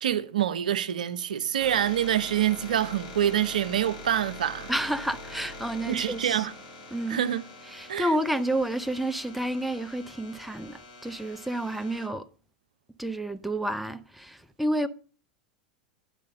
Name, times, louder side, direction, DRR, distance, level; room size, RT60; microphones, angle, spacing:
voice 1, 0.0-4.7 5.9-6.5 7.1-7.4 7.9-8.1, right 10 dB, 75° right, 0.6 m, -26 dB
sound 1, 1.6-12.1, left 2 dB, 65° left, 4.2 m, -44 dB
voice 2, 4.7-6.5 6.9-7.2 7.7-12.3 13.0-14.9, right 1 dB, ahead, 0.7 m, -30 dB
11.5 x 4.9 x 6.5 m
figure-of-eight pair, 85°, 4 cm